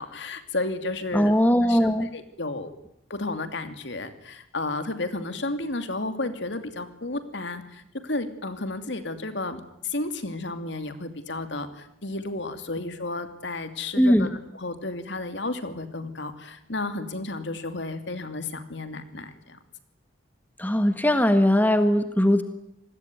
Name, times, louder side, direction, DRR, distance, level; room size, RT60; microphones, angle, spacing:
voice 1, 0.0-1.3 1.7-2.7 3.1-19.6, left 2 dB, 60° left, 9 dB, 2.7 m, -32 dB
voice 2, 1.1-2.1 14.0-14.3 20.6-22.4, equal, 10° left, 8 dB, 1.4 m, -20 dB
27.5 x 20.5 x 9.5 m, 0.78 s
head